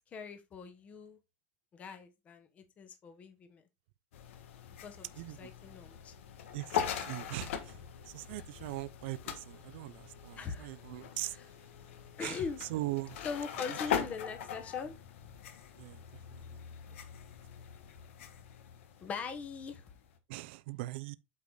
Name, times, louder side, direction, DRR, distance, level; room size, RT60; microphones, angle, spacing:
voice 1, 0.1-1.2 1.7-3.6 4.8-6.1 10.4-10.8 11.2-11.5 12.2-12.6 13.2-14.9 19.0-19.9, left 5 dB, 20° left, 1.1 m, -41 dB
sound 1, 4.1-20.2, left 8 dB, 80° left, 1.5 m, -41 dB
voice 2, 5.2-5.5 6.5-7.8 8.1-11.4 12.2-12.4 12.7-13.2 15.8-16.0 16.3-16.6 20.3-21.1, right 19 dB, 60° right, 0.6 m, -40 dB
8.4 x 4.9 x 3.9 m
supercardioid pair, 165°, 7 cm